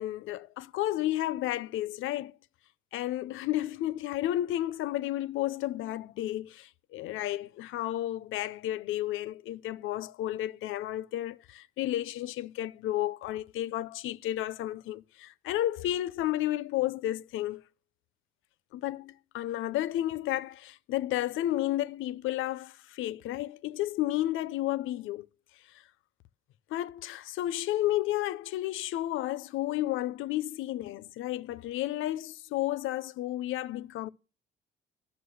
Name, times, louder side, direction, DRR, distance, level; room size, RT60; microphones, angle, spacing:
voice 1, 0.0-2.4 2.9-17.6 18.7-25.3 25.7-25.8 26.7-34.1, left 14 dB, 85° left, 0.5 m, -32 dB
11.0 x 6.0 x 6.2 m
cardioid pair, 90°, 20 cm